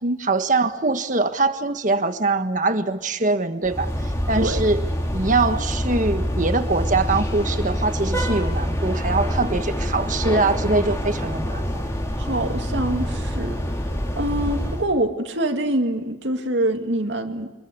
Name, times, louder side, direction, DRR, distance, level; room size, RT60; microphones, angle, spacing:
voice 1, 0.2-3.9 4.3-4.8 5.1-11.9, right 3 dB, 45° right, 8 dB, 1.6 m, -23 dB
sound 1, 3.6-14.9, equal, 15° left, 3.9 m, -26 dB
voice 2, 12.2-13.6 14.2-17.5, right 1 dB, 85° right, 4 dB, 2.3 m, -25 dB
26.0 x 22.0 x 8.4 m, 1.2 s
head